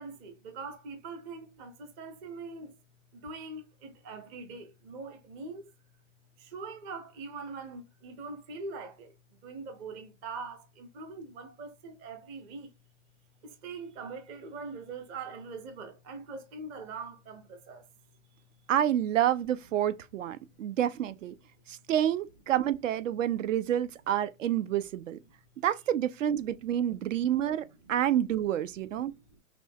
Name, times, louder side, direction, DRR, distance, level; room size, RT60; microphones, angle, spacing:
voice 1, 0.0-2.7 3.1-5.7 6.4-9.2 9.4-12.7 13.4-17.9 18.3-18.4 23.5-23.6 27.6-28.0 29.1-29.4, right 4 dB, 15° right, 0.5 m, -43 dB
voice 2, 18.7-21.3 21.7-25.2 25.6-29.1, right 11 dB, 75° right, 0.6 m, -28 dB
6.0 x 2.2 x 2.6 m
hypercardioid pair, 140°, 39 cm